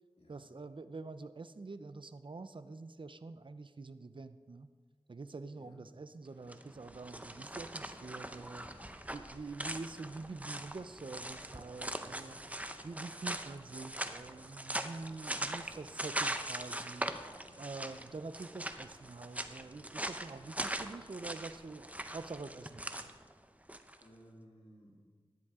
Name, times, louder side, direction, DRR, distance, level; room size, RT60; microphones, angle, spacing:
voice 1, 0.3-4.7 5.1-8.6 9.1-12.4 12.8-17.1 17.6-23.1, right 3 dB, 55° right, 12 dB, 0.6 m, -46 dB
sound 1, 6.4-24.0, right 1 dB, 15° right, 0.7 m, -41 dB
voice 2, 8.5-8.9 12.1-12.5 17.2-17.5 24.0-25.1, equal, 85° left, -7 dB, 3.4 m, -59 dB
13.0 x 10.5 x 3.7 m, 1.5 s
wide cardioid pair, 50°, 10 cm